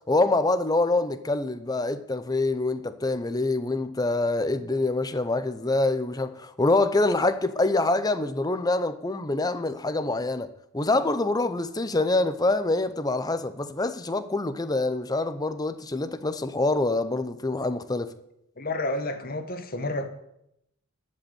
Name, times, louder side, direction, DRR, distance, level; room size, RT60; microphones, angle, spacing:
voice 1, 0.1-10.5 10.7-18.1, left 2 dB, 20° left, 0.6 m, -25 dB
voice 2, 18.6-20.1, left 2 dB, 45° left, 1.2 m, -30 dB
12.0 x 5.4 x 8.6 m
head